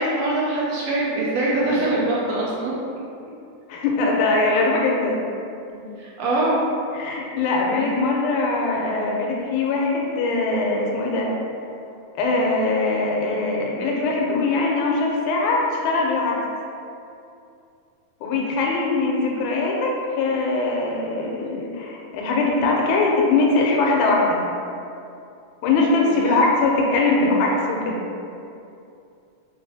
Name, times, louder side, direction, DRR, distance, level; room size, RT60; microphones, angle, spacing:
voice 1, 0.0-2.7 6.0-6.7 26.1-26.4, right 2 dB, 75° right, -6 dB, 1.6 m, -23 dB
voice 2, 3.7-5.2 5.7-5.9 6.9-11.3 12.2-16.4 18.2-24.4 25.6-28.0, left 3 dB, 85° left, -1 dB, 1.9 m, -21 dB
4.8 x 2.5 x 2.6 m, 2.6 s
omnidirectional pair, 3.4 m